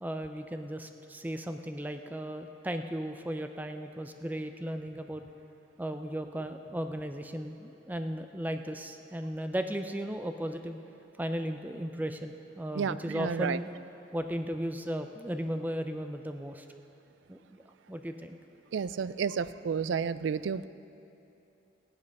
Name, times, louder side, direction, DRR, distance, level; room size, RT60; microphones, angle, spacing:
voice 1, 0.0-5.2 5.8-10.8 11.2-13.7 14.1-16.7 17.3-17.6 17.9-18.4, equal, 10° right, 7 dB, 0.4 m, -36 dB
voice 2, 12.7-13.6 18.7-20.7, right 6 dB, 80° right, 15 dB, 0.4 m, -31 dB
16.0 x 10.5 x 5.4 m, 2.9 s
head